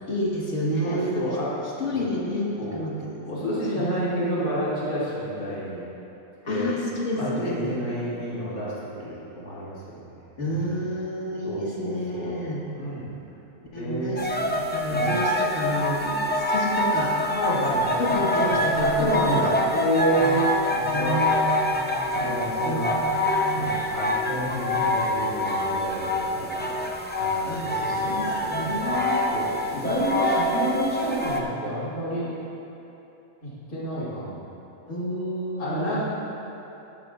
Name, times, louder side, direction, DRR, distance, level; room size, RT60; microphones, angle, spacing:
voice 1, 0.1-1.4 1.8-3.2 3.7-4.0 6.5-7.7 10.4-12.6 13.7-17.2 18.0-19.5 20.2-20.4 20.7-21.4 22.7-23.6 27.5-27.7 28.0-29.2 34.9-36.0, equal, 55° left, -4 dB, 1.9 m, -29 dB
voice 2, 0.8-1.5 1.9-2.1 2.6-2.8 3.3-5.8 6.5-6.7 7.1-10.1 10.4-10.8 11.4-12.4 12.7-13.1 13.8-14.6 14.9-15.1 17.3-20.4 20.7-21.2 21.7-22.9 23.5-28.9 29.3-32.3 33.4-34.4 35.6-36.0, equal, 85° left, -10 dB, 3.1 m, -30 dB
sound 1, 14.2-31.4, left 1 dB, 15° left, 0.3 m, -25 dB
12.5 x 12.5 x 2.5 m, 3.0 s
omnidirectional pair, 1.5 m